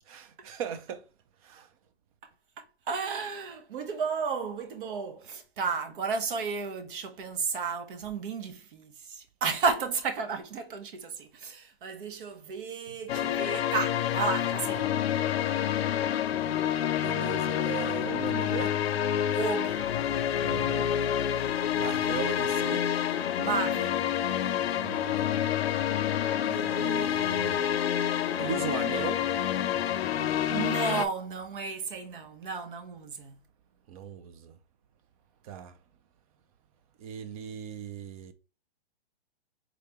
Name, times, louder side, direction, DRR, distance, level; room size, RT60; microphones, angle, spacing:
voice 1, 0.1-1.0 1.4-1.7 17.0-18.8 20.4-20.9 21.7-22.9 24.8-25.5 26.4-27.7 28.4-29.3 33.9-34.5 35.4-35.7 37.0-38.3, right 8 dB, 35° right, 0.6 m, -38 dB
voice 2, 2.6-14.9 19.3-19.9 23.4-24.1 30.5-33.3, right 5 dB, 55° right, 0.9 m, -33 dB
sound 1, 13.1-31.1, left 10 dB, 70° left, 0.6 m, -28 dB
4.0 x 3.3 x 2.9 m
hypercardioid pair, 140°, 31 cm